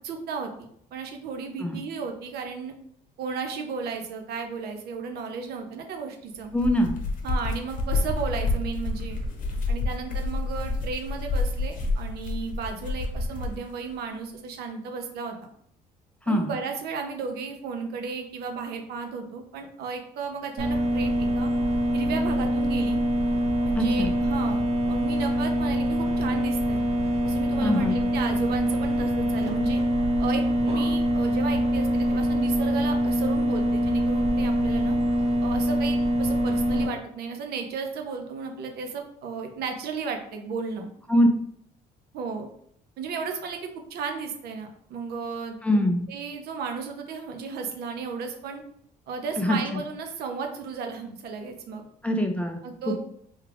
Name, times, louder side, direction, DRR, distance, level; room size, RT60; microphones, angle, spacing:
voice 1, 0.0-0.5 0.9-2.7 3.2-6.5 7.2-9.2 9.7-15.4 16.3-21.5 21.9-23.0 23.6-26.8 27.2-29.8 30.2-35.0 35.4-40.9 42.1-42.5 43.0-45.6 46.1-48.6 49.1-51.8 52.6-53.0, right 5 dB, 70° right, 4 dB, 0.6 m, -34 dB
sound 1, 6.4-13.6, left 3 dB, 50° left, 0.8 m, -29 dB
voice 2, 6.5-7.0 16.3-16.5 23.8-24.1 27.6-28.0 41.1-41.3 45.6-46.0 49.4-49.6 52.0-52.6 52.9-53.0, left 1 dB, 10° left, 4 dB, 0.4 m, -23 dB
sound 2, 20.6-36.9, equal, 40° right, 0.8 m, -24 dB
3.4 x 2.4 x 3.3 m, 0.68 s
cardioid pair, 110°, 17 cm